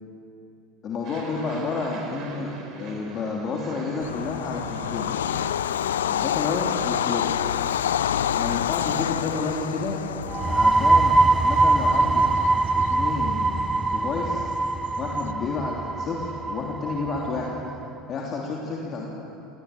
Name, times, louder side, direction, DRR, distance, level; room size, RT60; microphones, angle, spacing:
voice 1, 0.8-2.5 2.8-5.1 6.1-7.2 8.4-10.0 10.4-12.3 12.7-14.5 15.0-17.6 18.1-19.1, left 4 dB, 45° left, -2 dB, 3.0 m, -30 dB
Aircraft, 1.0-10.6, right 4 dB, 55° right, 4.6 m, -43 dB
Bird vocalization bird call bird song / Train, 4.0-15.2, left 10 dB, 90° left, 0.5 m, -28 dB
sound 1, 10.3-17.7, right 3 dB, 15° right, 0.8 m, -22 dB
18.0 x 18.0 x 9.2 m, 2.9 s
hypercardioid pair, 85°, 0 cm